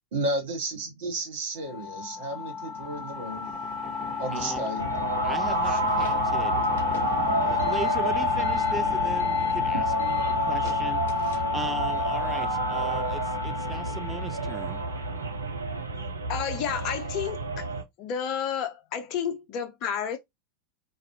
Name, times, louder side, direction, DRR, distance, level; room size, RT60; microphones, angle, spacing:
voice 1, 0.1-3.5 4.2-4.9 5.7-5.8 7.2-7.3, right 2 dB, 65° right, 1.2 m, -32 dB
sound 1, 1.7-15.1, left 6 dB, 20° left, 0.9 m, -29 dB
voice 2, 4.3-4.7 5.2-6.6 7.4-14.8, right 3 dB, 15° right, 0.4 m, -38 dB
sound 2, 4.8-17.8, right 4 dB, 85° right, 0.4 m, -30 dB
sound 3, 5.5-11.8, left 4 dB, 70° left, 0.8 m, -44 dB
voice 3, 16.3-17.6 18.0-20.2, left 8 dB, 45° left, 0.6 m, -31 dB
2.4 x 2.0 x 2.7 m
figure-of-eight pair, 90°, 0 cm